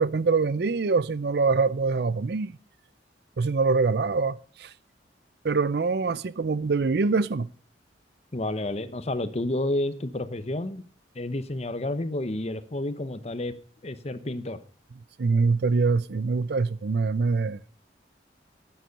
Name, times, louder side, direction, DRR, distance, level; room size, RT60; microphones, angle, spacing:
voice 1, 0.0-2.5 3.4-4.7 5.4-7.5 15.2-17.7, right 4 dB, 60° right, 0.5 m, -24 dB
voice 2, 8.3-10.8 11.1-13.5 13.8-14.6, left 1 dB, 35° left, 0.8 m, -30 dB
11.5 x 9.2 x 5.2 m
head